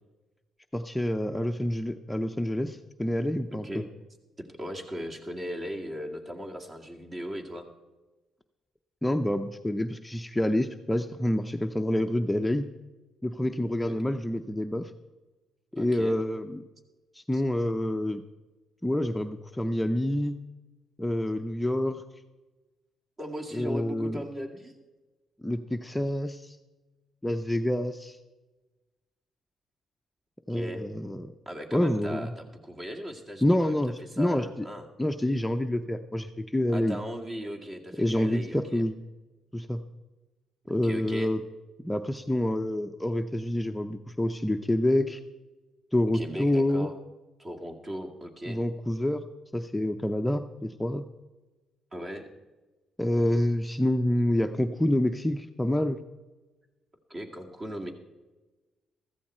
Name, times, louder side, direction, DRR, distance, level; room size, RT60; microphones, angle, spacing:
voice 1, 0.7-3.8 9.0-12.7 13.2-14.9 15.7-16.6 17.1-18.2 18.8-20.4 21.0-22.0 23.5-24.2 25.4-26.6 27.2-28.2 30.5-31.3 31.7-32.3 33.4-34.7 35.0-37.0 38.0-39.0 39.5-39.8 40.7-41.4 41.8-45.2 45.9-46.9 48.5-49.2 49.5-51.1 53.0-56.0, left 1 dB, 10° left, 7 dB, 0.6 m, -27 dB
voice 2, 3.5-3.9 4.4-7.7 15.8-16.2 17.3-17.4 23.2-24.7 30.5-30.9 31.5-34.9 36.7-38.8 40.6-41.3 46.1-46.9 47.4-48.6 51.9-52.3 57.1-57.9, equal, 30° right, 2 dB, 2.1 m, -38 dB
14.5 x 14.0 x 4.4 m, 1.2 s
cardioid pair, 90°, 0 cm